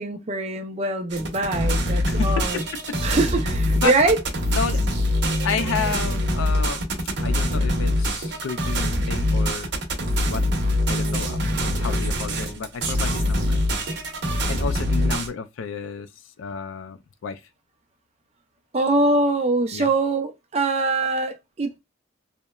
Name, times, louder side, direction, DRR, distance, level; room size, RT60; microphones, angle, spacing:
voice 1, 0.0-2.6 3.0-4.2 18.7-21.8, right 2 dB, 30° right, 0.4 m, -23 dB
sound 1, 1.1-15.3, left 1 dB, 60° right, 0.7 m, -24 dB
voice 2, 2.1-3.0 3.8-3.9 4.5-4.8 5.4-6.9 7.2-9.7 10.2-10.4 10.9-13.6 14.5-16.1 16.4-17.4 19.7-19.9, left 5 dB, 80° left, 0.4 m, -31 dB
2.9 x 2.1 x 2.2 m
head